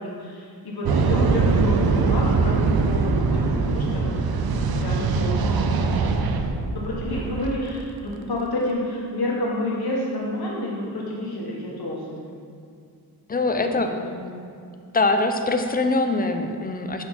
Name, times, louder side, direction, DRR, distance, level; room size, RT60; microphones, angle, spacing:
voice 1, 0.0-6.2 6.7-12.4 13.5-14.3, left 1 dB, 65° left, -4 dB, 1.4 m, -30 dB
sound 1, 0.8-7.6, right 4 dB, 65° right, 0.5 m, -22 dB
voice 2, 13.3-13.9 14.9-17.0, left 2 dB, 25° left, 6 dB, 0.4 m, -23 dB
5.5 x 4.3 x 4.2 m, 2.3 s
wide cardioid pair, 80°, 40 cm